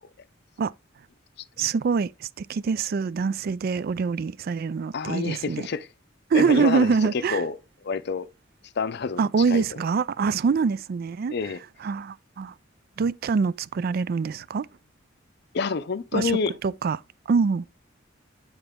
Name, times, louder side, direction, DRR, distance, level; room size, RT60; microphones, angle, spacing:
voice 1, 1.6-5.7 6.3-7.4 9.2-11.3 11.8-12.5 13.0-14.7 16.1-16.4 16.6-17.0 17.3-17.6, right 5 dB, 50° right, 0.3 m, -24 dB
voice 2, 4.9-5.9 6.3-7.6 7.8-8.3 8.8-9.2 9.5-9.6 11.3-11.6 15.5-16.5, left 5 dB, 60° left, 0.5 m, -28 dB
9.1 x 4.1 x 3.5 m
head